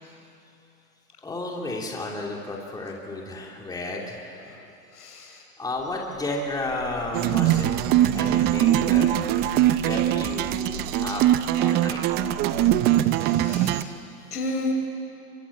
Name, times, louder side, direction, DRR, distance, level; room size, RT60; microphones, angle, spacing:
voice 1, 1.2-4.4 5.6-7.7 8.1-9.1 9.8-11.2 11.6-12.0, left 2 dB, 10° left, -1 dB, 2.9 m, -32 dB
voice 2, 4.9-5.5 13.0-14.0 14.3-14.7, left 2 dB, 80° left, 2 dB, 6.3 m, -33 dB
sound 1, 5.7-13.1, left 3 dB, 35° left, 6.6 m, -40 dB
sound 2, 7.1-13.8, right 13 dB, 20° right, 0.6 m, -22 dB
25.5 x 23.5 x 8.6 m, 2.8 s
hypercardioid pair, 125°, 46 cm